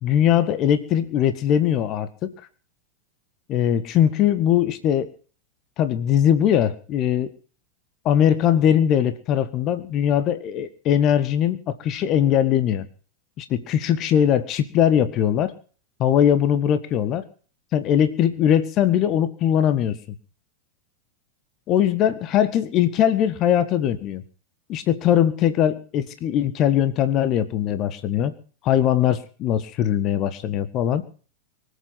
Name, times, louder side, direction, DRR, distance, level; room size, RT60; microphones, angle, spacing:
voice 1, 0.0-2.3 3.5-5.1 5.8-7.4 8.0-12.9 13.4-15.5 16.0-17.2 17.7-20.0 21.7-24.2 24.7-28.3 28.6-31.0, left 10 dB, 35° left, 12 dB, 1.6 m, -20 dB
24.0 x 8.6 x 5.8 m, 0.41 s
figure-of-eight pair, 90°, 0 cm